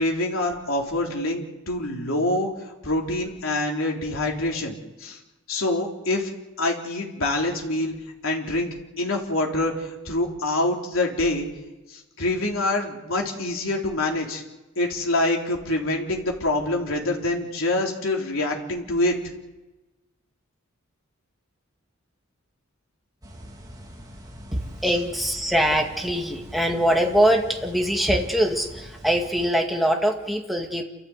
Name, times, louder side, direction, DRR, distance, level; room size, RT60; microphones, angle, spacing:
voice 1, 0.0-2.5 2.8-5.2 5.5-6.3 6.6-7.9 8.2-8.7 9.0-11.5 11.9-14.4 14.8-19.2, left 2 dB, 70° left, 0 dB, 3.9 m, -25 dB
sound 1, 23.2-29.5, equal, 20° right, 2.9 m, -38 dB
voice 2, 24.8-30.8, equal, ahead, 1 dB, 2.1 m, -23 dB
28.5 x 14.5 x 8.2 m, 1.1 s
head